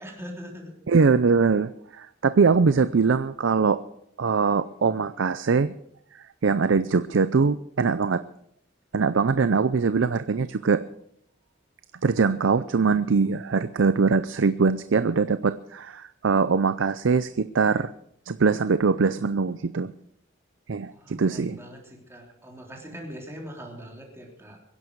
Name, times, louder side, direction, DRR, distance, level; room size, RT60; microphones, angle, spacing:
voice 1, 0.0-0.8 20.9-24.6, equal, 15° right, 0 dB, 3.4 m, -42 dB
voice 2, 0.9-1.7 2.0-3.8 4.2-5.7 6.1-8.2 8.9-10.8 12.0-17.9 18.3-19.9 20.7-21.6, right 5 dB, 70° right, 13 dB, 0.5 m, -22 dB
23.5 x 11.0 x 4.7 m, 0.71 s
head